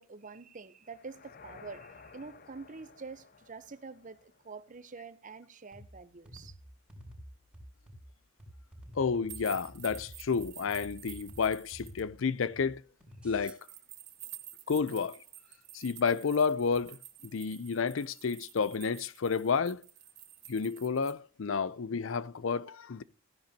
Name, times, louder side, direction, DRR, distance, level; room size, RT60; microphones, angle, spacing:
voice 1, 0.0-6.6, right 4 dB, 40° right, 0.8 m, -47 dB
sound 1, 0.8-5.0, left 4 dB, 50° left, 0.8 m, -55 dB
sound 2, 5.7-13.6, equal, 5° right, 5.2 m, -51 dB
voice 2, 8.9-12.8 13.2-13.6 14.7-15.2 15.7-17.0 17.2-19.8 20.5-23.0, left 5 dB, 90° left, 0.5 m, -31 dB
sound 3, 9.3-12.0 13.4-21.1, right 12 dB, 55° right, 1.6 m, -50 dB
15.0 x 10.5 x 2.8 m
head